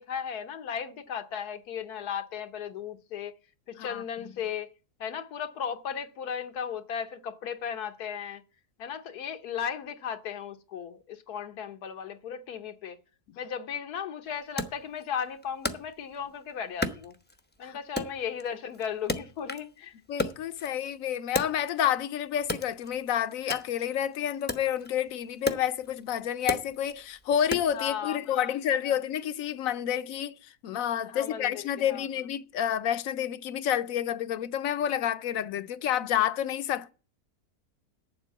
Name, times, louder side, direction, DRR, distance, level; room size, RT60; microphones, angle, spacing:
voice 1, 0.0-3.3 3.7-4.7 5.0-8.4 8.8-13.0 13.4-17.1 17.6-19.9 27.7-28.5 28.8-29.0 31.1-32.1, left 8 dB, 80° left, 1.4 m, -36 dB
Wood, 14.6-16.4 16.8-17.6 18.0-19.8 20.1-22.0 22.4-27.9, left 2 dB, 10° left, 0.6 m, -35 dB
voice 2, 20.1-30.3 30.6-36.9, left 10 dB, 65° left, 1.0 m, -29 dB
8.8 x 7.5 x 7.0 m
omnidirectional pair, 1.6 m